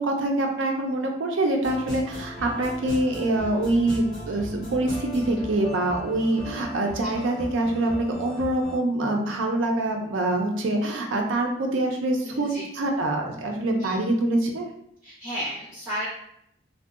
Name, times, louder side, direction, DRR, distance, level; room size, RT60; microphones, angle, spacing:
voice 1, 0.0-14.7, right 1 dB, 85° right, 2 dB, 0.5 m, -25 dB
sound 1, 1.6-8.8, equal, 20° left, 0.7 m, -38 dB
voice 2, 12.2-12.7 13.8-14.1 15.0-16.1, equal, 10° right, -15 dB, 1.0 m, -34 dB
2.6 x 2.1 x 2.4 m, 0.74 s
head